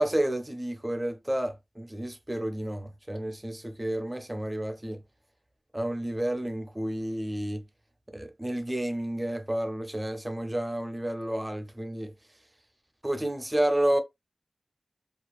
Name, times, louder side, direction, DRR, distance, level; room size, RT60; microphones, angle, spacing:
voice 1, 0.0-5.0 5.7-7.6 8.1-12.1 13.0-14.0, right 1 dB, 20° right, 0.5 m, -30 dB
2.4 x 2.3 x 2.2 m
wide cardioid pair, 65°, 0 cm